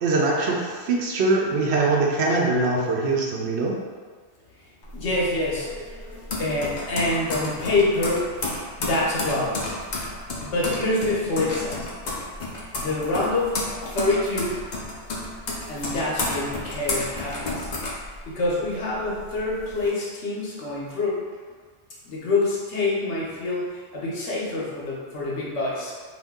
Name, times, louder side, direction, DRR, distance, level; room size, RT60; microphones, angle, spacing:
voice 1, 0.0-3.8, right 3 dB, 70° right, -2 dB, 0.8 m, -22 dB
sound 1, 4.8-18.7 19.0-19.9, left 2 dB, 50° left, 0.6 m, -31 dB
voice 2, 4.9-5.9 6.4-8.4 8.8-9.6 10.4-11.8 12.7-13.6 13.9-14.7 15.7-17.7 18.3-21.2 22.0-25.9, left 2 dB, 75° left, -5 dB, 1.1 m, -26 dB
2.6 x 2.6 x 3.5 m, 1.6 s
omnidirectional pair, 1.2 m